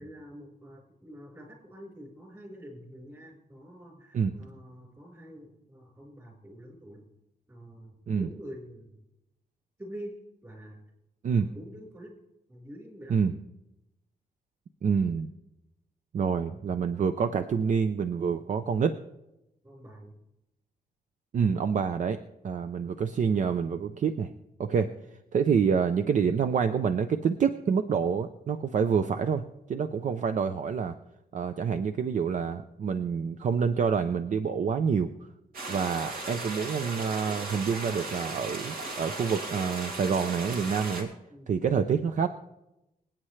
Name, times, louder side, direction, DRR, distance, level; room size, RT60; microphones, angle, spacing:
voice 1, 0.0-7.1 7.5-9.0 9.8-10.8 11.2-12.1 12.5-13.3 19.6-20.2 29.7-29.9 41.3-41.5, equal, 20° right, -1 dB, 4.5 m, -46 dB
voice 2, 14.8-15.3 16.1-19.0 21.3-22.2 22.4-24.3 24.6-24.9 25.3-30.9 31.3-35.1 35.7-41.1 41.5-42.3, right 6 dB, 50° right, 9 dB, 0.6 m, -27 dB
sound 1, 35.5-41.0, right 2 dB, 65° right, 2.7 m, -37 dB
26.0 x 8.9 x 3.3 m, 0.91 s
cardioid pair, 115°, 16 cm